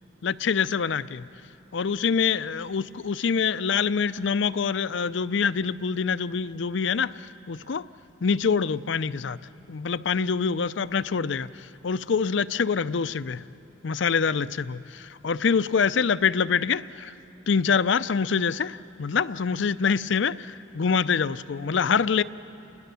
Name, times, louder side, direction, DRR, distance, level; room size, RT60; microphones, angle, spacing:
voice 1, 0.2-1.2 1.7-7.8 8.2-9.4 9.7-11.5 11.8-13.4 13.8-17.1 17.5-20.3 20.7-22.2, left 6 dB, 70° left, 16 dB, 0.5 m, -25 dB
28.5 x 20.5 x 6.9 m, 2.7 s
head